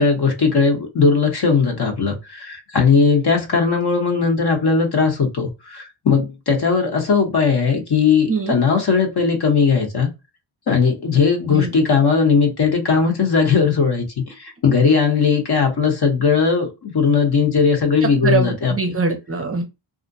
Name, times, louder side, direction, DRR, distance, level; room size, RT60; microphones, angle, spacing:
voice 1, 0.0-10.1 10.7-18.7, left 5 dB, 50° left, 1.0 m, -18 dB
voice 2, 8.3-8.6 11.5-11.7 18.0-19.6, right 4 dB, 30° right, 0.5 m, -22 dB
2.5 x 2.1 x 2.5 m
cardioid pair, 95°, 50 cm